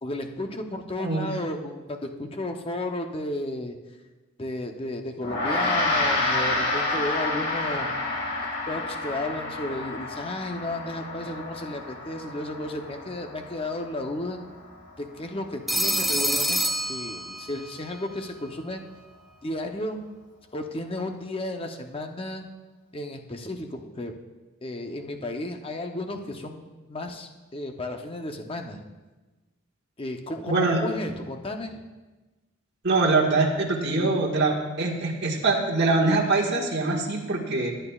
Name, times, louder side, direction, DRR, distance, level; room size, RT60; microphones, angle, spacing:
voice 1, 0.0-3.8 4.4-7.9 8.7-14.4 15.0-16.6 16.9-18.8 19.4-20.0 20.5-22.5 22.9-24.1 24.6-28.8 30.0-31.8, left 1 dB, 25° left, 5 dB, 0.7 m, -33 dB
Gong, 5.2-14.8, left 2 dB, 60° left, 2.4 m, -29 dB
Telephone, 15.7-17.7, right 1 dB, ahead, 0.4 m, -26 dB
voice 2, 30.5-30.8 32.8-37.7, right 3 dB, 55° right, -1 dB, 1.6 m, -23 dB
19.5 x 8.9 x 2.4 m, 1.2 s
head